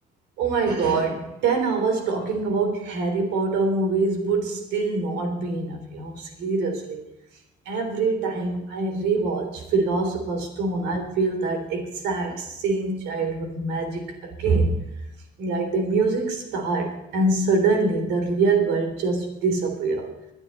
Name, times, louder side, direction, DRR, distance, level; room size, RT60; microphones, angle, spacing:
voice 1, 0.4-7.0 7.7-14.1 14.4-14.8 15.4-20.1, right 3 dB, 85° right, 4 dB, 3.5 m, -24 dB
26.5 x 9.9 x 4.3 m, 0.90 s
cardioid pair, 110°, 17 cm